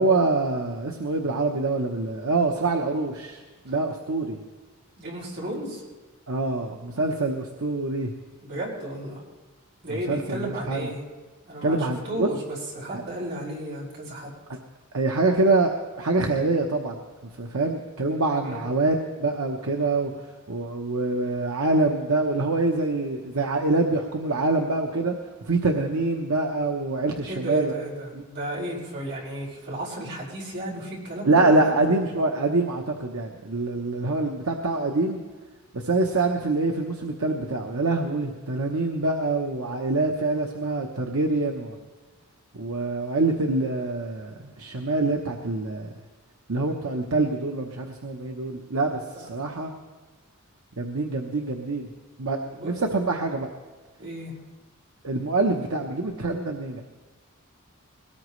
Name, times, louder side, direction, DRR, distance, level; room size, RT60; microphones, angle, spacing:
voice 1, 0.0-4.4 6.3-8.1 10.1-10.9 11.6-12.3 12.9-13.0 14.9-17.0 17.4-20.1 20.5-25.1 25.5-27.7 28.1-28.2 31.3-35.2 35.7-41.8 42.5-45.9 46.5-49.7 50.8-51.9 52.2-53.5 55.0-56.8, right 2 dB, 75° right, 2 dB, 1.0 m, -25 dB
voice 2, 5.0-5.8 8.4-9.2 9.8-11.0 11.5-14.3 18.4-18.7 27.3-31.7 49.1-49.3 52.5-52.8 54.0-54.3, right 1 dB, 55° right, -5 dB, 5.1 m, -33 dB
21.5 x 18.5 x 3.2 m, 1.3 s
head